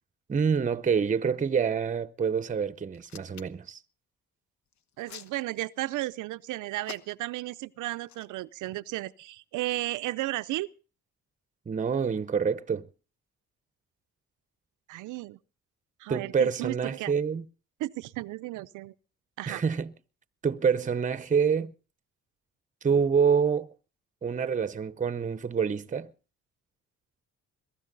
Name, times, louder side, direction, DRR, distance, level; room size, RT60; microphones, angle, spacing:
voice 1, 0.3-3.8 11.7-12.9 16.1-17.4 19.5-19.9 20.4-21.7 22.8-23.7 24.2-26.1, right 6 dB, 25° right, 0.7 m, -27 dB
Hands, 2.9-3.7 4.7-5.9 6.8-7.4 8.0-8.3, left 8 dB, 65° left, 1.1 m, -46 dB
voice 2, 5.0-10.7 14.9-15.4 16.0-17.1 17.8-18.9 19.4-19.6, right 17 dB, 90° right, 0.7 m, -34 dB
22.5 x 13.0 x 4.0 m
cardioid pair, 90°, 30 cm